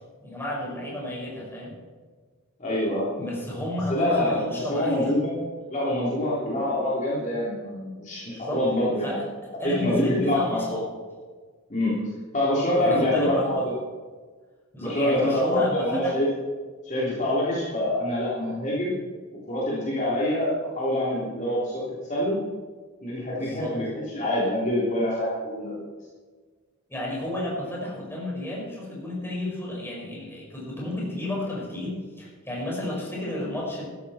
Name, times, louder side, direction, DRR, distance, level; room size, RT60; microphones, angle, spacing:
voice 1, 0.2-1.8 3.2-5.1 8.3-8.6 9.0-9.3 9.6-10.8 12.8-13.7 14.7-16.2 23.3-23.8 26.9-33.9, left 1 dB, 10° left, -4 dB, 5.2 m, -32 dB
voice 2, 2.6-3.1 3.9-5.4 5.7-9.2 9.6-10.8 11.7-11.9 12.3-13.7 14.8-16.3 16.8-18.9 19.5-22.4 23.0-25.9, left 1 dB, 35° left, -7 dB, 3.5 m, -25 dB
15.0 x 13.5 x 4.4 m, 1.5 s
head